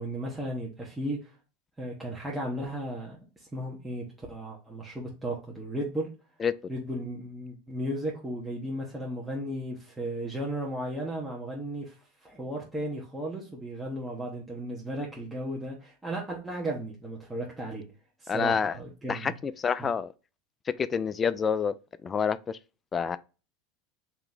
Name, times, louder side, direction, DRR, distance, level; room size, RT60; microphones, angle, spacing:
voice 1, 0.0-1.3 1.8-6.1 6.7-11.9 12.2-17.8 18.2-19.3, right 1 dB, 10° right, 1.0 m, -35 dB
voice 2, 6.4-6.7 18.3-18.8 19.1-20.1 20.7-21.7 22.0-22.6 22.9-23.2, left 6 dB, 25° left, 0.3 m, -28 dB
3.3 x 2.9 x 3.9 m
supercardioid pair, 115°, 0 cm